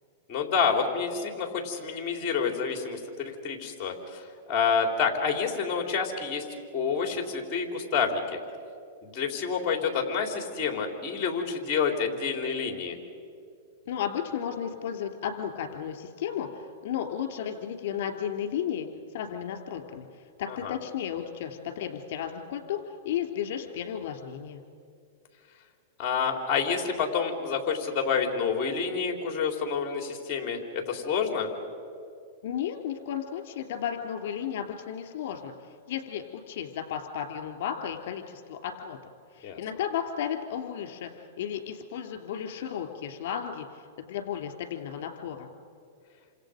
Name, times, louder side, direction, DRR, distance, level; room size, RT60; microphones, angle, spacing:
voice 1, 0.3-6.4 6.7-8.4 9.0-13.0 20.5-20.8 26.0-31.5 39.4-39.6, left 6 dB, 35° left, 3 dB, 3.9 m, -28 dB
voice 2, 13.9-18.9 19.1-20.0 20.4-24.6 32.4-35.5 35.9-39.0 39.3-41.1 41.4-43.7 44.0-45.5, left 9 dB, 60° left, 4 dB, 3.2 m, -33 dB
29.0 x 26.5 x 5.2 m, 2.4 s
hypercardioid pair, 135°, 0 cm